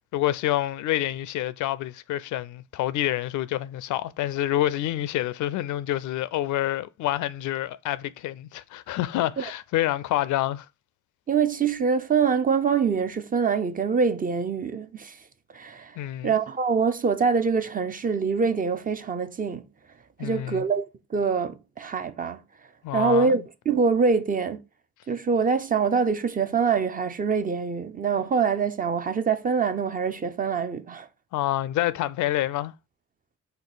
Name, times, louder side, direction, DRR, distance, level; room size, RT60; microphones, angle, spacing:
voice 1, 0.1-10.7 16.0-16.3 20.2-20.6 22.8-23.4 31.3-32.7, left 14 dB, 75° left, 0.4 m, -27 dB
voice 2, 11.3-15.2 15.5-16.0 16.2-19.6 20.2-20.8 21.1-22.4 22.9-24.6 25.1-31.1, right 5 dB, 30° right, 0.5 m, -24 dB
4.4 x 2.7 x 3.9 m
cardioid pair, 90°, 30 cm